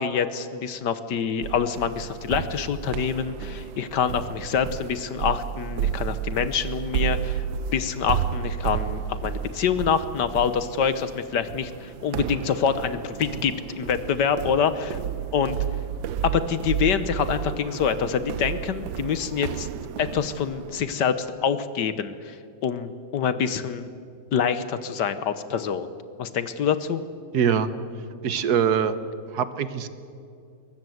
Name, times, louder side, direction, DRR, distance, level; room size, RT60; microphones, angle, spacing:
voice 1, 0.0-7.4 7.7-15.0 15.3-15.6 16.2-19.7 20.0-22.3 22.6-23.9 24.3-25.9 26.2-27.0, left 7 dB, 65° left, 12 dB, 1.5 m, -26 dB
sound 1, 1.4-20.9, right 9 dB, 80° right, 1.4 m, -32 dB
voice 2, 27.3-27.7 28.2-28.9 29.3-29.9, right 8 dB, 60° right, 13 dB, 1.4 m, -23 dB
22.5 x 20.0 x 7.9 m, 2.4 s
omnidirectional pair, 2.1 m